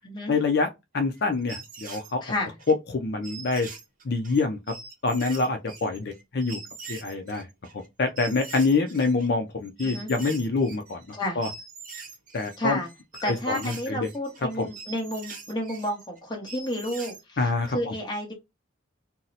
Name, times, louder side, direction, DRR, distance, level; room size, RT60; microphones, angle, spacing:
voice 1, 0.3-0.7 0.9-2.2 2.9-3.7 4.0-4.6 5.0-6.6 6.9-7.5 7.7-11.5 12.3-12.8 13.3-14.1 14.6-14.7 17.4-17.9, left 3 dB, 55° left, 0.5 m, -26 dB
sound 1, 1.0-2.7 3.2-9.3 9.6-11.2 11.4-17.2, right 4 dB, 40° right, 0.7 m, -43 dB
voice 2, 2.2-2.5 9.8-10.1 11.1-11.4 12.6-12.9 13.2-18.3, left 1 dB, 20° left, 0.9 m, -31 dB
2.8 x 2.0 x 3.9 m
head